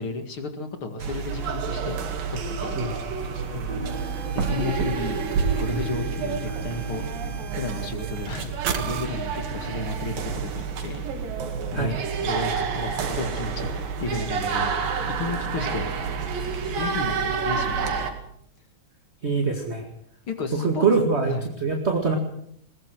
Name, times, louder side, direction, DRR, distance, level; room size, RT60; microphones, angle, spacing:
voice 1, 0.0-2.0 2.5-2.8 3.2-3.8 4.3-5.2 5.6-7.1 7.5-11.0 11.7-13.7 14.0-14.7 15.2-15.9 16.7-17.9 20.3-20.9 21.3-21.5, left 3 dB, 45° left, 6 dB, 2.5 m, -33 dB
sound 1, 1.0-18.1, right 5 dB, 85° right, 4.0 m, -29 dB
sound 2, 3.9-9.1, right 7 dB, 55° right, 2.4 m, -37 dB
voice 2, 19.2-19.9 20.5-22.2, right 4 dB, 25° right, 2 dB, 1.8 m, -23 dB
21.5 x 20.0 x 6.3 m, 0.69 s
omnidirectional pair, 3.9 m